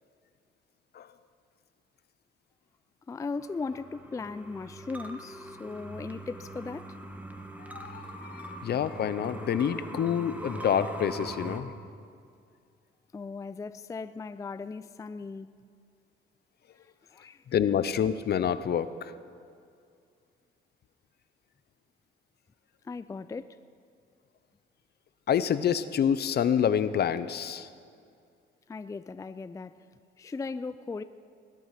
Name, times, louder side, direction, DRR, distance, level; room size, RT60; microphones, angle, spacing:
voice 1, 3.1-6.9 13.1-15.5 16.8-17.4 22.8-23.6 28.7-29.7 30.2-31.0, left 4 dB, 15° left, 13 dB, 0.4 m, -38 dB
sound 1, 3.4-11.6, right 1 dB, 5° right, 1.4 m, -42 dB
voice 2, 7.7-11.7 17.5-19.1 25.3-27.7, left 8 dB, 55° left, 14 dB, 0.7 m, -27 dB
21.0 x 9.3 x 5.8 m, 2.3 s
cardioid pair, 90°, 20 cm